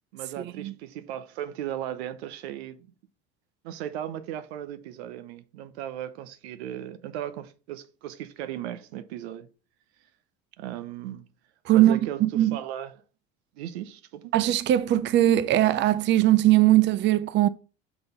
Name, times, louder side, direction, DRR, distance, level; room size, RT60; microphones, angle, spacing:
voice 1, 0.1-2.9 3.6-9.5 10.6-11.3 11.7-12.9 13.5-14.3, right 11 dB, 90° right, 0.8 m, -36 dB
voice 2, 11.7-12.6 14.3-17.5, right 14 dB, 35° right, 0.5 m, -20 dB
6.0 x 3.9 x 5.0 m
supercardioid pair, 95°, 31 cm